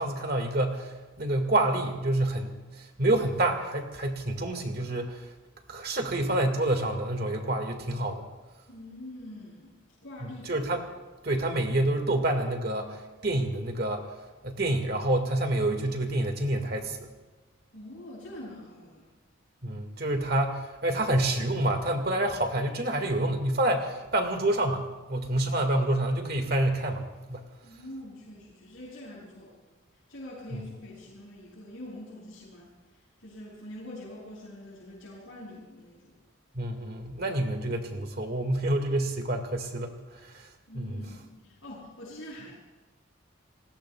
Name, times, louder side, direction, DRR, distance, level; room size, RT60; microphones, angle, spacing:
voice 1, 0.0-5.3 5.7-8.3 10.5-10.8 11.2-14.1 14.4-17.1 19.6-27.4 30.5-30.6 36.5-40.5 40.7-41.0, right 1 dB, 50° right, 4 dB, 1.9 m, -28 dB
voice 2, 8.7-10.5 17.7-19.1 27.6-29.5 30.1-36.1 40.7-42.5, left 1 dB, 75° left, -7 dB, 5.9 m, -45 dB
30.0 x 20.0 x 2.3 m, 1.2 s
head